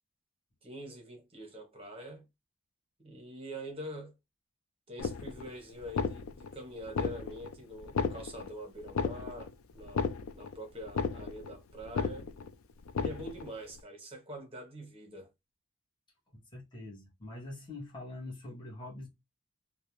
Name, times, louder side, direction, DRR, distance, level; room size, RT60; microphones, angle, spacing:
voice 1, 0.6-2.2 3.0-4.1 4.9-10.0 10.3-12.3 13.0-15.3, equal, 30° right, 0.7 m, -45 dB
sound 1, 5.0-5.5 5.8-6.5 6.9-7.5 7.8-8.5 8.9-9.5 9.8-10.5 10.8-11.5 11.8-12.5 12.9-13.5, left 5 dB, 70° left, 0.4 m, -34 dB
voice 2, 16.3-19.1, left 2 dB, 20° left, 0.9 m, -44 dB
2.4 x 2.0 x 2.9 m
head